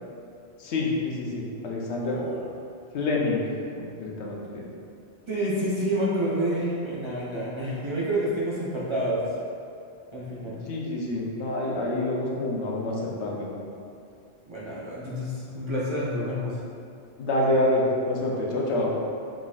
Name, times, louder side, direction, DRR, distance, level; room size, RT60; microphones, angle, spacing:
voice 1, 0.6-2.2 2.9-3.4 3.8-4.6 10.7-13.5 17.2-19.0, left 2 dB, 90° left, -2 dB, 1.0 m, -27 dB
voice 2, 2.0-2.4 5.3-9.3 10.1-10.6 14.5-16.6, equal, 30° right, -8 dB, 0.7 m, -28 dB
4.7 x 3.9 x 2.4 m, 2.4 s
omnidirectional pair, 1.1 m